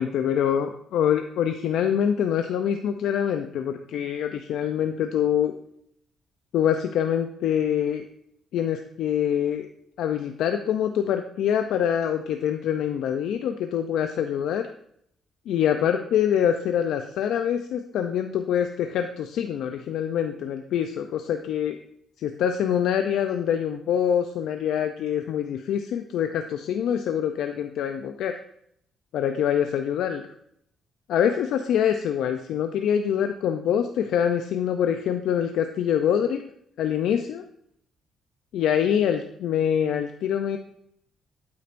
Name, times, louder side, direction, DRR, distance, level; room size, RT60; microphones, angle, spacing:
voice 1, 0.0-5.5 6.5-8.0 8.5-9.7 10.0-14.7 15.5-21.8 22.2-28.3 29.1-30.2 31.1-36.4 36.8-37.4 38.5-40.6, left 9 dB, 80° left, 6 dB, 0.5 m, -25 dB
8.6 x 8.4 x 2.6 m, 0.71 s
cardioid pair, 90°, 0 cm